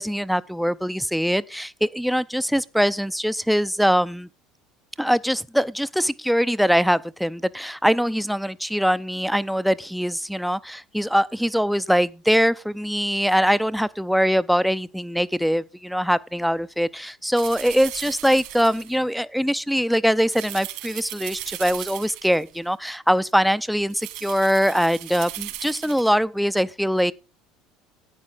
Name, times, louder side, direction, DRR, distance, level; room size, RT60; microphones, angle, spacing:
voice 1, 0.0-4.3 5.0-27.1, equal, ahead, 0.5 m, -22 dB
sound 1, 17.3-19.0 20.3-22.6 23.9-26.1, right 15 dB, 75° right, 3.0 m, -37 dB
12.0 x 8.7 x 3.9 m
supercardioid pair, 110°, 0 cm